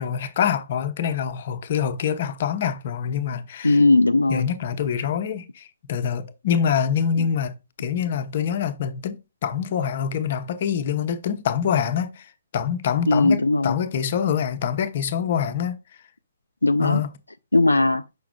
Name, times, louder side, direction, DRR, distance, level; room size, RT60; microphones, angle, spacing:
voice 1, 0.0-3.8 4.3-15.8 16.8-17.1, left 8 dB, 40° left, 0.8 m, -25 dB
voice 2, 3.6-4.5 13.1-13.8 16.6-17.0 17.5-18.0, left 2 dB, 75° left, 0.4 m, -18 dB
6.8 x 5.9 x 2.3 m
figure-of-eight pair, 130°, 0 cm